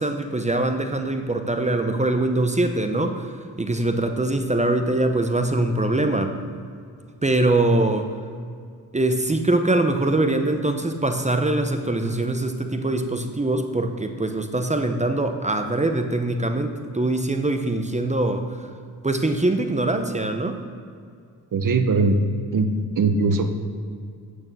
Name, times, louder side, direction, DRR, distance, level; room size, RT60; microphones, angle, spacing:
voice 1, 0.0-6.3 7.2-8.1 8.9-18.7 19.0-20.6, right 2 dB, 15° right, 6 dB, 0.8 m, -23 dB
voice 2, 21.5-22.2 22.5-22.7 23.0-23.5, right 3 dB, 50° right, 7 dB, 1.0 m, -20 dB
8.9 x 6.3 x 6.1 m, 2.2 s
cardioid pair, 70°, 40 cm